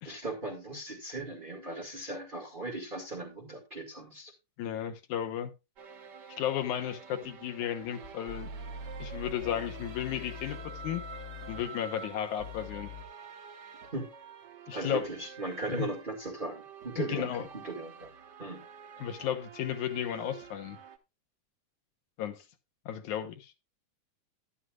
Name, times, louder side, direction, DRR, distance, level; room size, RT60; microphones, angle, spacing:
voice 1, 0.1-4.3 13.9-14.1 14.7-18.1 18.4-18.6, right 2 dB, 20° right, 1.8 m, -38 dB
voice 2, 4.6-5.5 6.4-8.5 9.0-10.6 10.8-11.0 11.5-12.9 14.7-15.0 15.7-15.9 17.0-17.4 19.0-20.8 22.2-22.4 22.9-23.5, left 10 dB, 80° left, 2.4 m, -34 dB
sound 1, 5.8-21.0, right 6 dB, 75° right, 0.9 m, -48 dB
sound 2, 8.0-11.6 12.4-13.0, left 4 dB, 30° left, 1.6 m, -43 dB
11.5 x 11.5 x 2.4 m
omnidirectional pair, 3.5 m